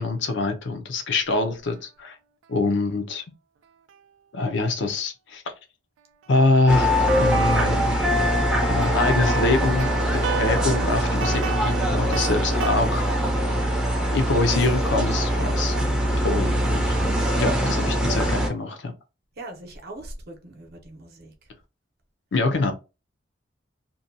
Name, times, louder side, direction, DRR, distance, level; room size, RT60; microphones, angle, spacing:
voice 1, 0.0-2.2 2.5-3.2 4.3-5.4 6.3-8.0 8.7-13.1 14.1-15.7 16.2-16.9 17.4-18.9 22.3-22.7, left 3 dB, 65° left, 0.6 m, -24 dB
sound 1, 6.2-6.3 6.9-12.8, right 6 dB, 80° right, 0.3 m, -33 dB
sound 2, 6.7-18.5, equal, 5° right, 0.5 m, -22 dB
voice 2, 19.4-21.3, right 1 dB, 55° right, 0.7 m, -40 dB
2.6 x 2.2 x 2.6 m
head